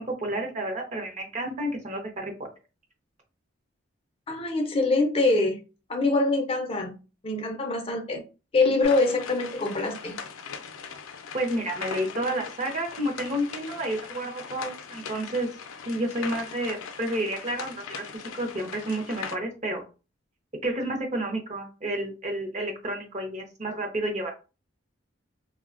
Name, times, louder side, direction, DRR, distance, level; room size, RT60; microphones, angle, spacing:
voice 1, 0.0-2.5 11.3-15.5 15.9-19.8 20.6-24.3, right 1 dB, 35° right, 2 dB, 0.6 m, -30 dB
voice 2, 4.3-5.6 5.9-7.0 7.2-8.2 8.5-10.2, left 2 dB, 30° left, 3 dB, 0.4 m, -24 dB
sound 1, 8.8-19.4, left 6 dB, 85° left, 0.4 m, -40 dB
3.2 x 2.1 x 2.4 m, 0.32 s
head